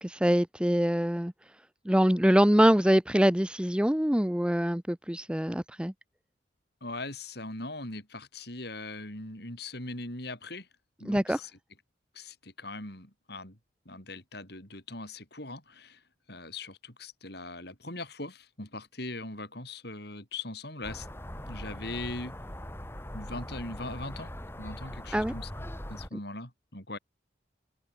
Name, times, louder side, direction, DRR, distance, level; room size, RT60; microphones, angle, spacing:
voice 1, 0.0-1.3 1.9-5.9 11.0-11.4 25.1-25.3, equal, 5° right, 0.7 m, -24 dB
voice 2, 6.8-10.7 11.0-11.5 12.1-13.6 13.9-16.0 16.3-21.1 21.5-22.3 23.1-24.3 24.6-25.5 25.9-27.0, left 2 dB, 55° left, 7.3 m, -40 dB
sound 1, 20.8-26.1, equal, 10° left, 3.8 m, -41 dB
head